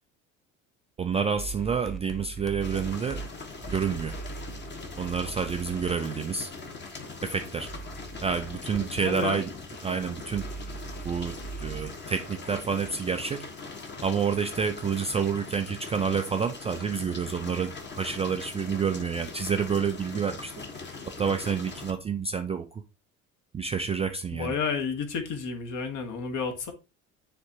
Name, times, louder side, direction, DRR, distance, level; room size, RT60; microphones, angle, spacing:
voice 1, 1.0-3.2 3.7-4.2 5.0-6.5 7.2-7.7 8.2-9.5 9.8-10.5 11.0-13.5 14.0-20.5 21.1-22.8 23.5-24.5, right 6 dB, 15° right, 0.4 m, -29 dB
sound 1, 1.4-13.3, right 4 dB, ahead, 1.1 m, -42 dB
sound 2, 2.6-21.9, left 4 dB, 25° left, 1.3 m, -41 dB
voice 2, 9.0-9.4 24.3-26.7, left 5 dB, 45° left, 1.4 m, -31 dB
9.8 x 3.5 x 2.8 m
figure-of-eight pair, 60°, 41 cm